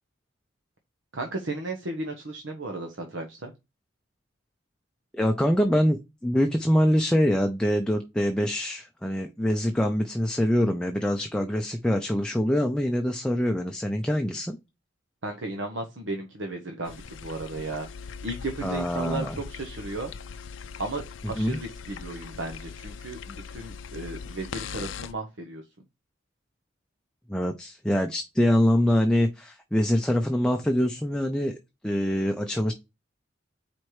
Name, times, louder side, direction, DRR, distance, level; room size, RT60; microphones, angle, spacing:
voice 1, 1.1-3.5 15.2-17.9 18.2-20.1 20.8-25.6, right 2 dB, 85° right, 1.0 m, -35 dB
voice 2, 5.1-14.6 18.6-19.4 21.4-21.6 27.3-31.6 31.8-32.7, equal, 5° left, 0.5 m, -24 dB
sound 1, 16.9-25.1, left 6 dB, 85° left, 0.5 m, -40 dB
4.7 x 4.2 x 4.8 m
head